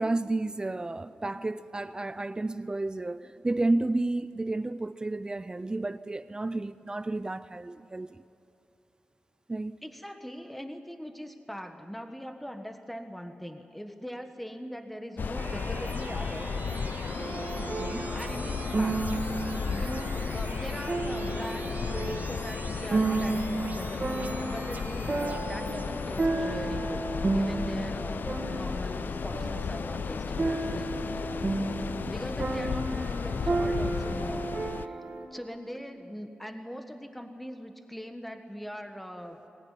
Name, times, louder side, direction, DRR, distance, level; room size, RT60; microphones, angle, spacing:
voice 1, 0.0-8.2 9.5-9.8 17.6-18.1, right 2 dB, 25° right, 0.5 m, -31 dB
voice 2, 9.8-16.5 18.1-31.4 32.0-34.5 34.8-35.0 35.3-39.5, equal, 5° left, 1.4 m, -41 dB
sound 1, 15.2-34.9, left 5 dB, 75° left, 0.6 m, -34 dB
sound 2, 15.3-26.3, right 4 dB, 60° right, 2.0 m, -44 dB
sound 3, 17.2-35.3, right 2 dB, 40° right, 2.0 m, -33 dB
23.5 x 19.0 x 9.9 m
wide cardioid pair, 90°, 3 cm